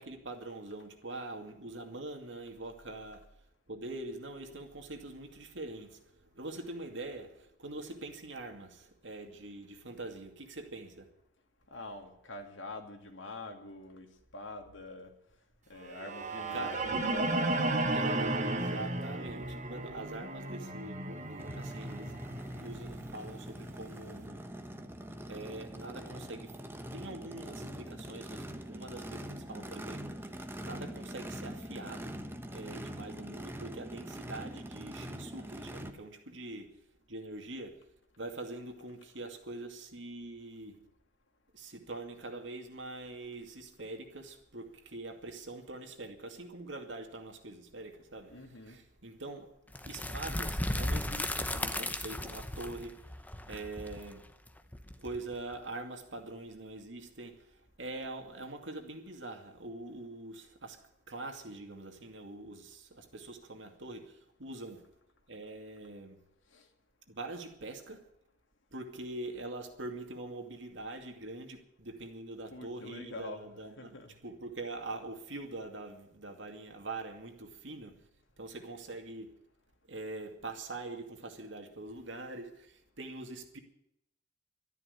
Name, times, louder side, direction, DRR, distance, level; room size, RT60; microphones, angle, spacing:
voice 1, 0.0-3.3 3.7-11.1 16.5-16.9 17.9-22.2 22.6-24.4 25.3-26.5 26.9-30.3 30.6-32.2 32.5-36.8 37.1-37.8 38.2-40.8 41.5-49.5 49.8-53.0 53.5-54.2 55.0-57.5 57.8-60.8 61.1-64.8 65.3-66.2 67.1-68.1 68.7-78.0 78.4-79.3 79.9-83.6, right 2 dB, 70° right, 2.4 m, -44 dB
voice 2, 11.7-15.1 15.7-17.6 48.3-48.8 66.5-66.7 72.5-74.2, left 2 dB, 80° left, 2.3 m, -45 dB
sound 1, 15.9-24.0, right 2 dB, 40° right, 1.7 m, -34 dB
Race car auto racing / Idling / Accelerating revving vroom, 21.4-35.9, equal, 10° right, 1.2 m, -44 dB
sound 2, 49.7-55.5, left 1 dB, 10° left, 0.9 m, -36 dB
13.0 x 11.0 x 9.7 m
head